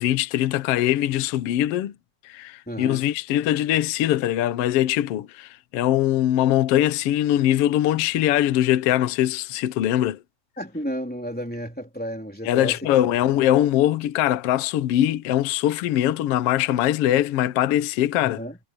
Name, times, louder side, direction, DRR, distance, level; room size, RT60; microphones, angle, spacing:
voice 1, 0.0-1.9 2.2-10.2 12.4-18.4, left 13 dB, 80° left, 1.3 m, -22 dB
voice 2, 2.7-3.1 10.6-12.9 13.3-13.4 18.2-18.6, equal, 5° left, 3.5 m, -32 dB
omnidirectional pair, 4.0 m